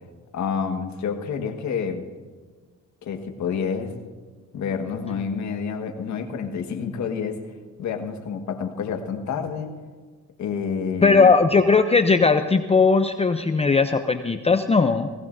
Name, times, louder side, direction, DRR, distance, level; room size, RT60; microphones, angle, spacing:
voice 1, 0.3-2.0 3.0-3.9 4.5-7.4 7.8-9.7 10.4-11.3, left 6 dB, 70° left, 5 dB, 1.6 m, -28 dB
voice 2, 11.0-15.1, left 4 dB, 20° left, 8 dB, 0.6 m, -18 dB
19.0 x 17.0 x 2.7 m, 1.4 s
cardioid pair, 90°, 30 cm